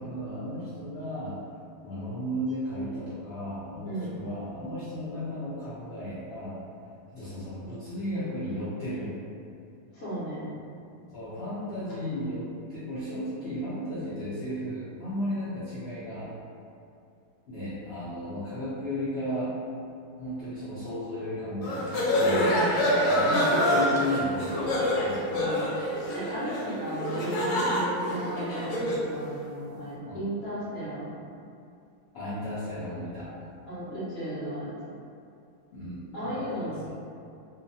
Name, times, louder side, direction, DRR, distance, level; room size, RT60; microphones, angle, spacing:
voice 1, 0.0-1.4 1.8-6.6 7.1-9.1 11.1-16.3 17.5-19.5 20.2-25.5 30.1-30.3 32.1-33.3 35.7-36.9, equal, 70° left, -11 dB, 0.6 m, -35 dB
voice 2, 3.8-4.1 9.9-10.5 22.2-22.7 23.3-23.5 25.3-25.8 26.1-31.1 33.7-34.9 36.1-36.9, right 1 dB, 55° left, -11 dB, 1.0 m, -35 dB
sound 1, 21.6-29.1, equal, 90° left, 1.2 m, -26 dB
2.6 x 2.1 x 2.6 m, 2.5 s
omnidirectional pair, 1.7 m